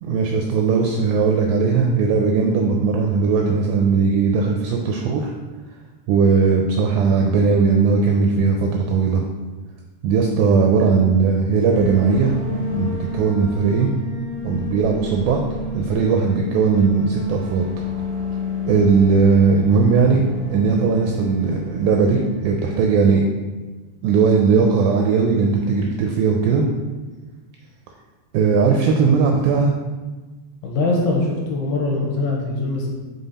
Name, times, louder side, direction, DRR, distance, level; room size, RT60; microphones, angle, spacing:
voice 1, 0.0-5.3 6.1-9.2 10.0-12.3 12.7-13.9 14.4-15.4 15.7-17.6 18.7-20.2 20.5-23.2 24.0-26.6 28.3-29.7, right 5 dB, 80° right, 1 dB, 2.2 m, -18 dB
sound 1, 11.7-23.2, left 3 dB, 55° right, 1.6 m, -30 dB
voice 2, 30.6-32.9, left 2 dB, 85° left, -2 dB, 3.1 m, -22 dB
5.7 x 5.4 x 4.1 m, 1.3 s
omnidirectional pair, 4.6 m